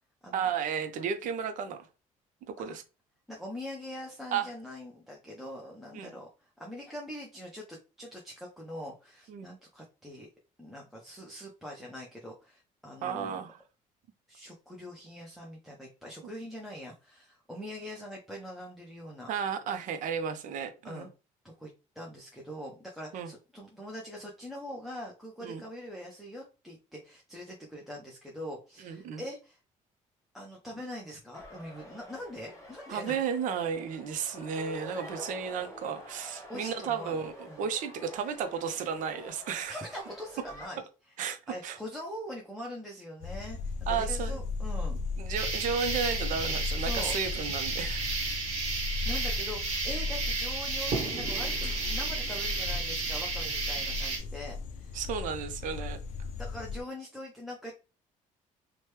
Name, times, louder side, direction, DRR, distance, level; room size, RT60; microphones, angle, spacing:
voice 1, 0.3-1.9 2.5-2.8 4.3-4.5 5.9-6.1 9.3-9.5 13.0-13.6 19.3-21.1 23.1-23.3 25.4-25.6 28.8-29.2 32.9-39.8 41.2-41.8 43.9-44.4 45.2-48.2 54.9-56.0, right 7 dB, 65° right, 0.6 m, -33 dB
voice 2, 3.3-10.3 10.6-13.4 14.3-19.3 20.8-21.1 21.4-21.7 22.0-29.6 30.3-33.2 36.5-37.2 37.5-37.6 39.7-45.0 46.8-47.1 48.9-55.0 56.3-57.7, left 1 dB, ahead, 0.6 m, -43 dB
sound 1, 31.3-40.7, left 1 dB, 20° left, 1.0 m, -47 dB
sound 2, 43.2-56.8, left 4 dB, 55° left, 0.4 m, -36 dB
sound 3, 45.3-54.2, right 3 dB, 50° right, 1.4 m, -33 dB
2.9 x 2.2 x 3.2 m
cardioid pair, 135°, 14 cm